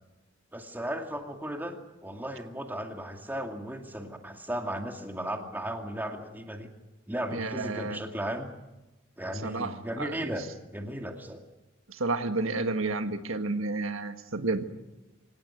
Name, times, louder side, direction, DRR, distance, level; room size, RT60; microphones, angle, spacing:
voice 1, 0.5-6.7 7.1-8.5 9.2-11.4, right 1 dB, 10° right, 3 dB, 2.4 m, -36 dB
voice 2, 7.3-8.0 9.4-10.1 12.0-14.6, right 3 dB, 85° right, 7 dB, 1.6 m, -31 dB
25.0 x 18.5 x 9.2 m, 1.0 s
head